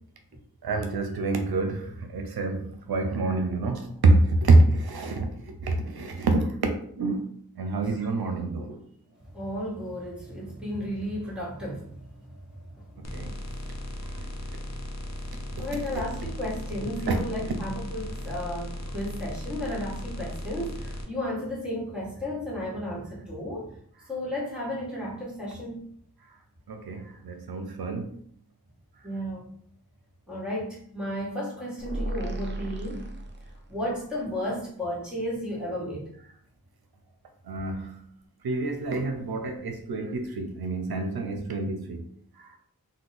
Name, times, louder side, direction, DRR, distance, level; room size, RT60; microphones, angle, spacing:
voice 1, 0.6-2.6 2.9-5.3 5.6-6.4 7.0-7.3 7.6-8.8 13.1-13.3 15.9-16.0 17.1-17.5 26.7-28.1 37.5-37.9 38.4-42.0, right 2 dB, 80° right, 4 dB, 0.5 m, -26 dB
voice 2, 9.3-12.0 12.3-12.4 13.1-13.6 13.9-14.0 14.7-14.8 15.6-23.7 24.1-25.8 29.0-29.5 30.3-33.0 33.7-36.1, equal, ahead, -4 dB, 1.2 m, -33 dB
sound 1, 13.0-21.0, left 1 dB, 45° left, 0.6 m, -37 dB
sound 2, 31.8-33.9, right 1 dB, 30° right, 0.5 m, -35 dB
2.7 x 2.1 x 3.9 m, 0.62 s
wide cardioid pair, 65°, 37 cm